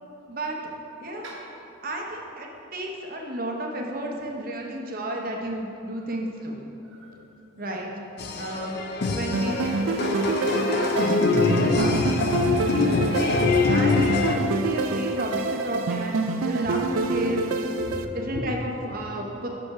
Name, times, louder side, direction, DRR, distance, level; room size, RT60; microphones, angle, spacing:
voice 1, 0.3-0.7 1.0-1.4 1.8-6.7 7.6-7.9 8.3-8.8 9.1-10.3 10.6-12.0 13.1-17.4 18.1-19.5, right 1 dB, 40° right, 0 dB, 0.7 m, -32 dB
voice 2, 6.8-7.2 7.6-7.8 8.3-8.4 12.8-13.2 17.2-17.3 17.8-18.4, equal, 60° right, -2 dB, 1.2 m, -38 dB
sound 1, 8.2-14.4, left 3 dB, 50° left, 0.4 m, -23 dB
sound 2, 9.3-18.0, right 3 dB, 75° right, 0.4 m, -27 dB
6.3 x 5.4 x 4.7 m, 2.9 s
head